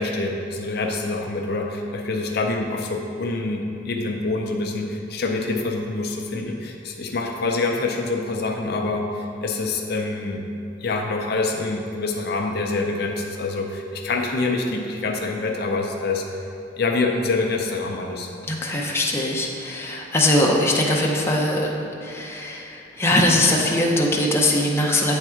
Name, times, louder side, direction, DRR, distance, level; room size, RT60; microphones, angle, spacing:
voice 1, 0.0-10.4 10.8-16.2 16.8-18.3, left 3 dB, 55° left, 1 dB, 0.5 m, -26 dB
voice 2, 18.5-21.7 22.0-25.2, left 1 dB, 15° left, -2 dB, 0.6 m, -21 dB
8.9 x 3.6 x 4.4 m, 2.6 s
head